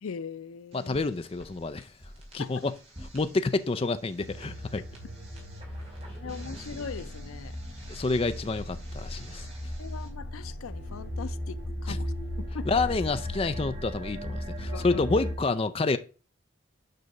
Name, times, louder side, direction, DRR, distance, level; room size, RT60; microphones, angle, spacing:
voice 1, 0.0-1.0 2.4-2.7 6.2-7.6 9.8-12.7 14.7-15.0, left 5 dB, 90° left, 0.5 m, -40 dB
voice 2, 0.7-1.9 2.3-2.7 3.1-4.8 7.9-9.5 11.9-12.0 12.7-16.0, left 3 dB, 25° left, 0.4 m, -28 dB
sound 1, 0.7-10.1, right 1 dB, 30° right, 2.2 m, -51 dB
sound 2, 4.2-15.3, equal, 45° right, 3.2 m, -36 dB
6.7 x 5.4 x 4.8 m
head